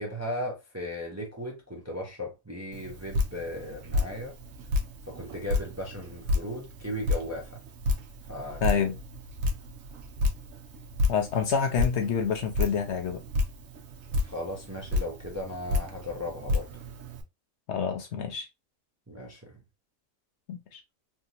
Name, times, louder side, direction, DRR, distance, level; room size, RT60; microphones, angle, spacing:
voice 1, 0.0-4.3 5.1-7.6 8.3-8.6 14.2-16.8 19.1-19.5, left 1 dB, 15° right, 0.6 m, -36 dB
Drip, 2.7-17.2, left 2 dB, 75° right, 1.1 m, -31 dB
voice 2, 8.6-9.0 11.1-13.2 17.7-18.5 20.5-20.8, left 7 dB, 65° left, 0.8 m, -28 dB
3.4 x 2.8 x 2.4 m
omnidirectional pair, 1.4 m